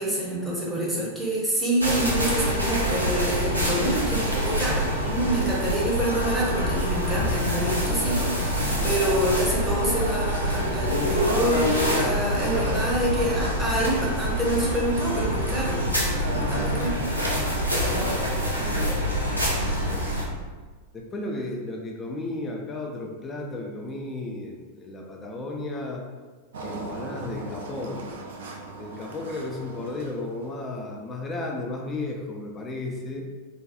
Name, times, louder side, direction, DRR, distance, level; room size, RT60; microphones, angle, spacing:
voice 1, 0.0-15.8 16.2-16.9, right 1 dB, 5° right, -6 dB, 0.7 m, -27 dB
sound 1, 1.8-20.3, equal, 90° left, 0.4 m, -26 dB
voice 2, 18.6-18.9 19.8-20.0 20.9-26.0 26.5-28.1 28.8-33.2, left 2 dB, 20° left, 0 dB, 0.4 m, -34 dB
Engine, 26.5-31.0, right 2 dB, 60° right, 0.3 m, -39 dB
2.5 x 2.2 x 2.4 m, 1.4 s
figure-of-eight pair, 90°, 0 cm